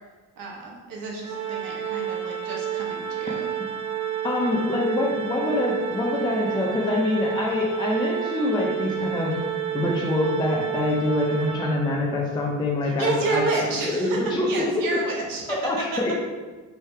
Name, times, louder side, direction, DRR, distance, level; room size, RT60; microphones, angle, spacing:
voice 1, 0.4-3.5 12.8-14.2 14.5-15.8, right 3 dB, 75° right, -2 dB, 1.0 m, -30 dB
Organ, 1.2-12.1, right 10 dB, 55° right, 0.8 m, -30 dB
voice 2, 4.2-9.4 9.7-14.7 15.6-16.1, left 2 dB, 15° left, -2 dB, 0.5 m, -25 dB
3.3 x 2.8 x 4.4 m, 1.3 s
cardioid pair, 115°, 34 cm